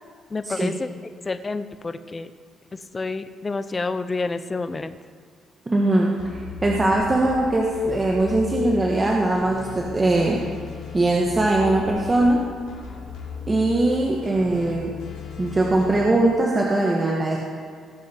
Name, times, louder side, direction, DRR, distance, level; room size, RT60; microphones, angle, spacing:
voice 1, 0.3-0.9 1.2-2.3 2.9-5.0, left 3 dB, 25° left, 11 dB, 0.7 m, -29 dB
voice 2, 5.7-6.1 6.6-10.4 10.9-12.4 13.5-14.9 15.4-17.4, right 2 dB, 25° right, -2 dB, 1.5 m, -21 dB
sound 1, 6.2-16.1, left 6 dB, 80° left, 3.3 m, -37 dB
18.0 x 7.5 x 4.6 m, 2.1 s
cardioid pair, 90°, 0 cm